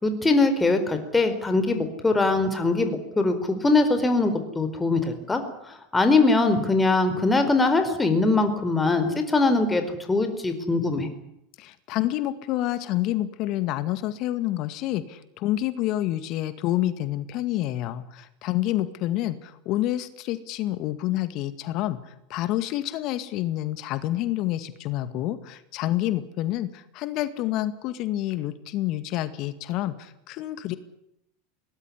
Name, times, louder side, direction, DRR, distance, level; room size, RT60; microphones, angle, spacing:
voice 1, 0.0-5.4 5.7-9.8 10.1-11.1, left 3 dB, 15° left, 7 dB, 4.5 m, -22 dB
voice 2, 11.6-30.8, left 14 dB, 55° left, 13 dB, 2.0 m, -28 dB
22.0 x 19.5 x 10.0 m, 0.81 s
hypercardioid pair, 85°, 0 cm